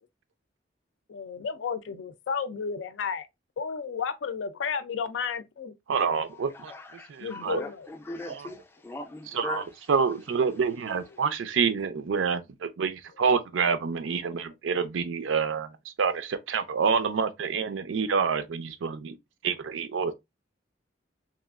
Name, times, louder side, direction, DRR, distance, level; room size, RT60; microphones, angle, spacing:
voice 1, 1.1-3.3 3.6-5.7 7.2-7.9, left 6 dB, 80° left, 0.4 m, -32 dB
voice 2, 5.9-6.7 7.1-7.6 8.3-8.5 9.3-15.7 16.0-19.1 19.4-20.1, right 5 dB, 90° right, 0.4 m, -27 dB
voice 3, 6.5-9.6, left 2 dB, 10° left, 0.4 m, -39 dB
3.0 x 2.4 x 2.3 m
head